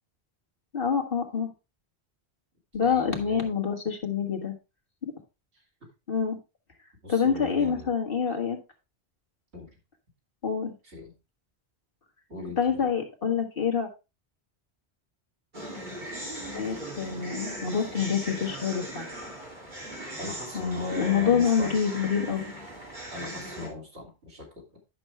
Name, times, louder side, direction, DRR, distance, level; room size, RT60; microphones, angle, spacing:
voice 1, 0.7-1.5 2.7-4.5 5.0-5.1 6.1-6.4 7.1-8.6 10.4-10.7 12.6-13.9 16.5-19.1 20.5-22.5, left 7 dB, 55° left, 3 dB, 1.9 m, -26 dB
voice 2, 2.8-3.5 7.0-7.9 9.5-9.7 10.8-11.1 12.3-12.9 20.2-21.7 23.1-24.8, left 3 dB, 90° right, 0 dB, 3.2 m, -39 dB
sound 1, 15.5-23.7, right 1 dB, 45° right, 2.9 m, -38 dB
10.5 x 6.2 x 3.3 m, 0.27 s
omnidirectional pair, 1.1 m